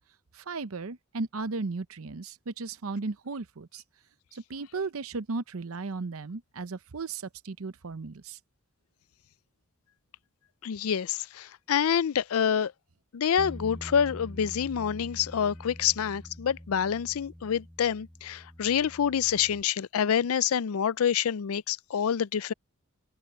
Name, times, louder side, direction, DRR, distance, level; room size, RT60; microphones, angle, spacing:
voice 1, 0.3-3.8 4.3-8.4, right 3 dB, 80° right, 0.7 m, -35 dB
voice 2, 10.6-12.7 13.1-22.5, left 8 dB, 80° left, 0.4 m, -27 dB
Bass guitar, 13.4-19.6, equal, 5° left, 0.6 m, -45 dB
open air
head